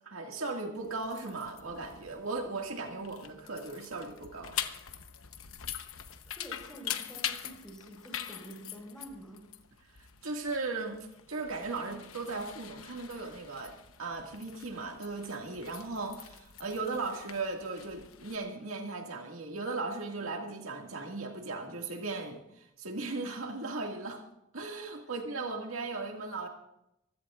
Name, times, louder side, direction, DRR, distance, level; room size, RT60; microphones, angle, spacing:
voice 1, 0.0-4.6 10.0-24.2 24.5-26.5, right 3 dB, 75° right, 2 dB, 2.1 m, -37 dB
sound 1, 0.8-18.4, left 10 dB, 75° left, 1.0 m, -44 dB
voice 2, 6.4-9.5, right 1 dB, 5° left, 0 dB, 4.5 m, -48 dB
25.5 x 16.0 x 2.5 m, 0.83 s
head